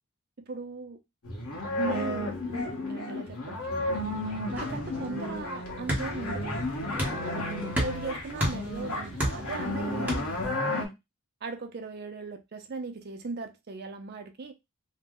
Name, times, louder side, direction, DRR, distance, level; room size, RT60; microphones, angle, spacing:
voice 1, 0.5-1.0 1.8-3.9 4.5-6.5 6.9-10.9 11.4-14.5, right 4 dB, 50° right, 0.5 m, -38 dB
sound 1, 1.2-10.9, left 1 dB, 85° left, 1.1 m, -33 dB
sound 2, 3.9-10.5, right 1 dB, 10° right, 0.9 m, -35 dB
2.6 x 2.0 x 3.5 m
head